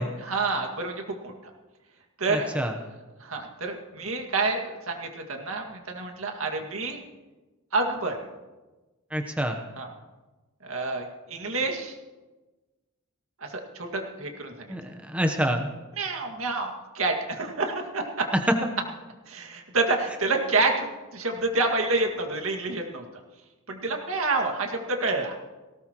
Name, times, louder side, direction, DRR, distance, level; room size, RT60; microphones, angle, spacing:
voice 1, 0.2-1.3 2.2-2.5 3.2-7.0 7.7-8.2 9.8-9.9 10.6-12.0 13.4-14.7 16.0-18.3 19.3-20.9 21.1-23.0 23.7-25.4, right 3 dB, 75° right, 3 dB, 2.1 m, -28 dB
voice 2, 2.3-2.7 9.1-9.6 14.7-15.7, equal, 5° right, 4 dB, 0.9 m, -27 dB
18.5 x 18.0 x 3.0 m, 1.2 s
head